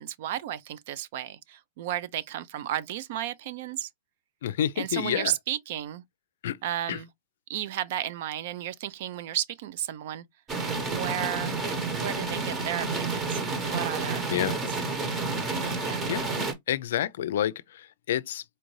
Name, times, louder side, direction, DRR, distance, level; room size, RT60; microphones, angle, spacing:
voice 1, 0.0-3.9 4.8-6.0 6.6-7.1 7.5-10.2 10.9-11.6 11.9-13.4 13.7-14.5 15.6-16.1, right 12 dB, 55° right, 0.4 m, -33 dB
voice 2, 4.4-5.3 6.4-6.6 6.9-7.0 14.3-14.6 16.1-16.2 16.7-18.4, left 11 dB, 75° left, 0.4 m, -28 dB
sound 1, 10.5-16.5, right 3 dB, 20° right, 1.0 m, -30 dB
4.3 x 2.6 x 3.1 m
supercardioid pair, 150°, 0 cm